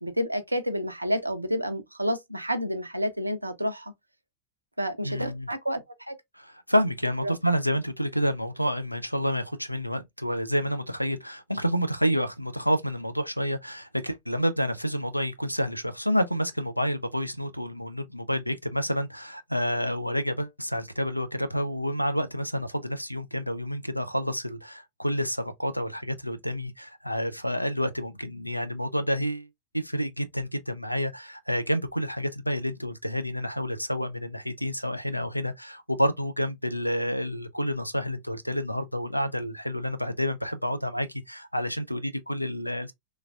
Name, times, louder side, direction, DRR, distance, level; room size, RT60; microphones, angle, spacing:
voice 1, 0.0-3.9 4.8-6.2 7.2-7.3, equal, 85° right, 0.4 m, -30 dB
voice 2, 5.0-5.5 6.3-29.5 29.7-42.9, equal, 90° left, 0.4 m, -29 dB
3.1 x 2.3 x 2.3 m
figure-of-eight pair, 90°, 0 cm